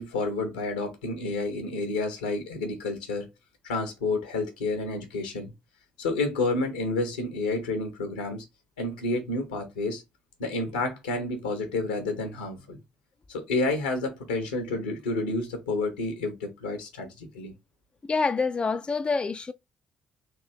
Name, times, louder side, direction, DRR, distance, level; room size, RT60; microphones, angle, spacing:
voice 1, 0.0-3.3 3.6-5.5 6.0-8.4 8.8-10.0 10.4-12.8 13.3-17.5, left 2 dB, 80° left, 1.0 m, -30 dB
voice 2, 18.0-19.5, left 4 dB, 25° left, 0.3 m, -26 dB
3.6 x 2.7 x 3.4 m
figure-of-eight pair, 45°, 4 cm